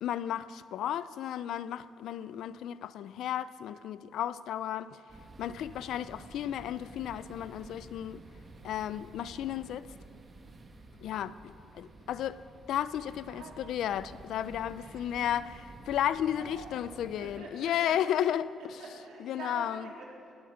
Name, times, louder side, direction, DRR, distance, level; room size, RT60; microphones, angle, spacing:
voice 1, 0.0-5.0 5.4-8.2 8.6-9.9 11.0-12.4 12.7-15.5 15.8-18.5 19.3-19.8, left 10 dB, 80° left, 0.5 m, -33 dB
sound 1, 5.1-17.4, right 2 dB, 35° right, 1.8 m, -51 dB
voice 2, 5.6-5.9 12.3-12.5 13.2-13.9 14.8-15.4 16.3-20.3, right 3 dB, 85° right, 3.8 m, -48 dB
19.0 x 8.7 x 7.8 m
cardioid pair, 90°, 0 cm